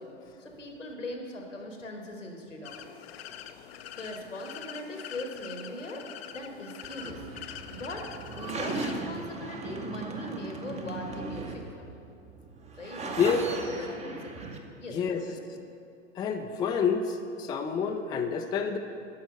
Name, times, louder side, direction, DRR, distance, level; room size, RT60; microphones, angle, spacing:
voice 1, 0.0-2.9 3.9-7.2 7.7-11.9 12.8-14.5 14.8-15.6, left 1 dB, 85° left, 2 dB, 1.6 m, -40 dB
sound 1, 2.6-9.0, left 10 dB, 55° left, 0.6 m, -44 dB
sound 2, 6.8-14.6, right 3 dB, 20° right, 0.8 m, -38 dB
voice 2, 14.9-15.2 16.2-18.8, left 6 dB, 10° left, 5 dB, 0.4 m, -28 dB
10.5 x 6.1 x 6.5 m, 2.5 s
figure-of-eight pair, 90°, 37 cm